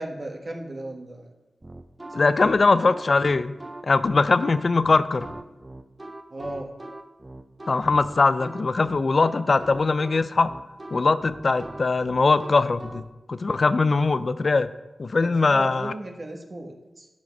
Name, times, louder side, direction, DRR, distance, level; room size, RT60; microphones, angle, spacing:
voice 1, 0.0-1.3 2.2-2.6 6.3-6.7 15.2-17.1, right 1 dB, 45° right, 1 dB, 1.4 m, -36 dB
sound 1, 1.6-13.1, right 1 dB, 20° right, 0.6 m, -41 dB
voice 2, 2.1-3.6 3.8-5.3 7.7-10.5 10.9-14.7 15.0-15.9, left 3 dB, 50° left, 13 dB, 0.5 m, -21 dB
11.5 x 6.2 x 5.3 m, 1.1 s
wide cardioid pair, 90°, 0 cm